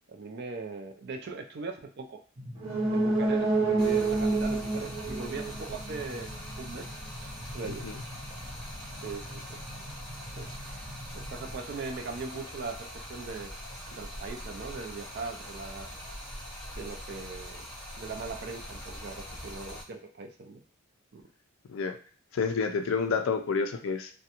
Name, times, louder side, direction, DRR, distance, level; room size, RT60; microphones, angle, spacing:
voice 1, 0.1-2.2 2.9-6.9 7.5-7.8 8.9-9.4 10.4-10.9 11.1-13.5 13.9-15.9 16.8-17.7 17.9-20.6 21.1-21.2, right 4 dB, 50° right, 5 dB, 0.4 m, -40 dB
sound 1, 2.4-11.5, equal, 70° right, 0.8 m, -46 dB
sound 2, 2.6-6.3 6.6-6.7, right 3 dB, 25° right, 0.8 m, -28 dB
Stream, 3.8-19.8, equal, 5° left, 0.7 m, -42 dB
voice 2, 7.6-8.0 21.7-22.0 22.3-24.1, left 5 dB, 65° left, 7 dB, 0.4 m, -29 dB
2.4 x 2.1 x 2.8 m, 0.43 s
head